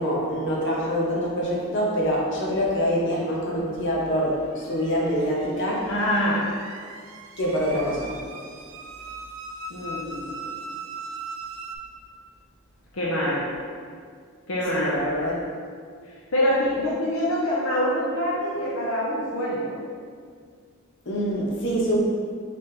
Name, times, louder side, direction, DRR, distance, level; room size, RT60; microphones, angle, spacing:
voice 1, 0.0-5.9 7.4-8.1 14.7-15.3 21.1-22.0, equal, 60° left, -4 dB, 0.9 m, -25 dB
sound 1, 4.2-11.8, right 3 dB, 70° right, 0.4 m, -39 dB
voice 2, 5.9-6.4 9.7-10.3 12.9-13.4 14.5-15.0 16.3-19.8, equal, 80° left, -6 dB, 0.7 m, -25 dB
4.2 x 3.3 x 3.5 m, 2.1 s
head